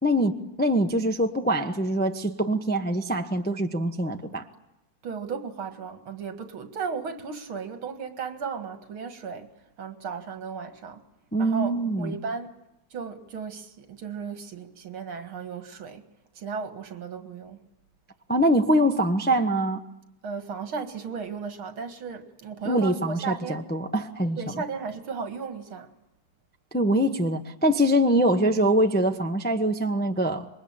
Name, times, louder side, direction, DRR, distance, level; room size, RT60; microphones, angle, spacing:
voice 1, 0.0-4.5 11.3-12.2 18.3-19.8 22.6-24.4 26.7-30.5, right 1 dB, 10° left, 0.7 m, -24 dB
voice 2, 5.0-9.5 9.8-11.0 11.4-12.5 12.9-16.1 16.3-17.7 20.2-23.7 24.4-25.9, right 5 dB, 75° right, 2.7 m, -35 dB
27.0 x 22.5 x 8.8 m
omnidirectional pair, 2.3 m